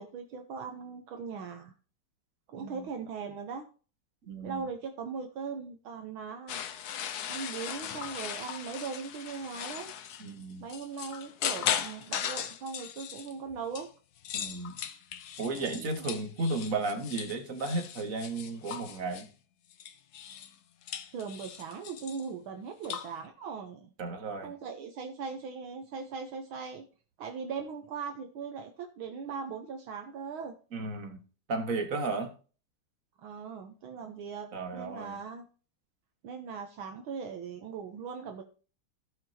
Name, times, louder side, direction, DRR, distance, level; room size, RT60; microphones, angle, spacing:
voice 1, 0.0-1.7 2.5-3.7 4.4-6.6 7.3-9.9 10.6-13.9 15.5-16.1 21.1-23.9 24.4-26.8 27.2-30.5 33.2-35.5 36.2-38.4, right 5 dB, 70° right, 5 dB, 1.7 m, -39 dB
voice 2, 4.3-4.6 10.2-10.6 14.3-14.7 15.4-19.3 24.0-24.5 30.7-31.2 31.5-32.3 34.5-35.1, right 3 dB, 40° right, 5 dB, 1.9 m, -34 dB
sound 1, 6.5-13.9 14.2-19.3 19.7-20.6 20.8-22.3 22.8-23.1, left 9 dB, 65° left, 1.0 m, -38 dB
16.0 x 5.9 x 2.8 m, 0.37 s
omnidirectional pair, 2.4 m